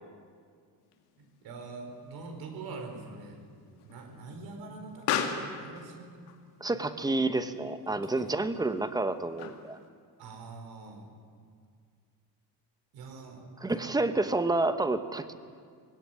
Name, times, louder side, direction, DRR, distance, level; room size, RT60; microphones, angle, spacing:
Explosion, 0.9-9.9, left 8 dB, 80° left, 2.5 m, -40 dB
voice 1, 1.2-3.4 3.8-5.1 5.4-6.1 6.7-6.9 7.9-8.3 10.2-11.1 12.9-14.0, right 3 dB, 70° right, 3 dB, 4.4 m, -44 dB
voice 2, 6.6-9.8 13.6-15.3, right 2 dB, 10° right, 10 dB, 0.9 m, -29 dB
21.0 x 17.5 x 9.6 m, 2.1 s
cardioid pair, 165°, 38 cm